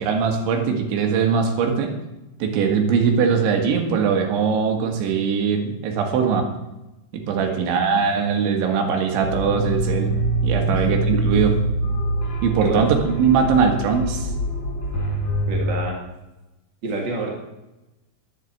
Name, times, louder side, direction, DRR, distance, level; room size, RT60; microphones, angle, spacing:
voice 1, 0.0-1.9 2.4-6.5 7.1-10.1 10.4-11.5 12.4-14.3, right 6 dB, 85° right, 3 dB, 4.1 m, -21 dB
sound 1, 9.2-15.7, right 1 dB, 40° left, 5.5 m, -24 dB
voice 2, 15.5-16.0 16.8-17.3, right 2 dB, 55° right, -1 dB, 1.2 m, -28 dB
11.0 x 8.7 x 8.3 m, 0.97 s
omnidirectional pair, 5.2 m